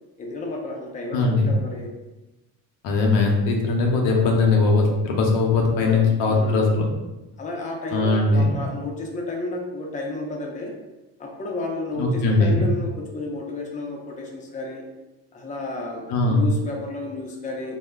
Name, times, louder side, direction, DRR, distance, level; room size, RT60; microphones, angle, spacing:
voice 1, 0.2-2.0 4.1-4.6 5.8-6.8 7.4-10.8 11.2-14.8 15.3-17.8, left 2 dB, 15° left, 0 dB, 0.5 m, -32 dB
voice 2, 1.1-1.5 2.8-6.9 7.9-8.6 12.0-12.7 16.1-16.5, left 3 dB, 75° left, 1 dB, 0.7 m, -20 dB
2.3 x 2.1 x 3.4 m, 1.0 s
supercardioid pair, 70°, 44 cm